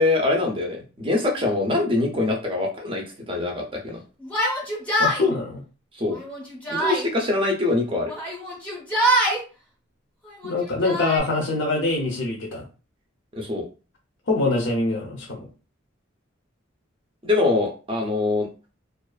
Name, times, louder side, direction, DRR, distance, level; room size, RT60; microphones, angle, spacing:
voice 1, 0.0-4.0 5.9-6.2 6.7-8.1 13.3-13.7 17.2-18.5, left 2 dB, 25° right, 1 dB, 0.5 m, -23 dB
Yell, 4.2-5.2 6.1-7.1 8.1-9.4 10.3-11.2, right 1 dB, 5° left, 0.7 m, -24 dB
voice 2, 5.0-5.6 10.4-12.6 14.3-15.5, left 2 dB, 60° left, -1 dB, 0.6 m, -24 dB
2.4 x 2.3 x 2.3 m, 0.34 s
head